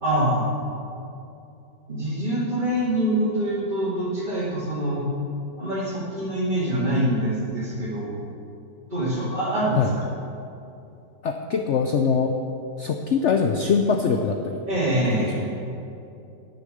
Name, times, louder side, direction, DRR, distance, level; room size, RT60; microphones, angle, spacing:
voice 1, 0.0-0.5 1.9-5.1 5.6-8.1 8.9-9.8 14.7-15.4, right 1 dB, 25° right, -10 dB, 2.3 m, -25 dB
voice 2, 11.2-12.4 12.8-14.6 15.1-15.5, left 5 dB, 75° left, 4 dB, 0.6 m, -23 dB
11.5 x 6.7 x 6.7 m, 2.7 s
omnidirectional pair, 1.9 m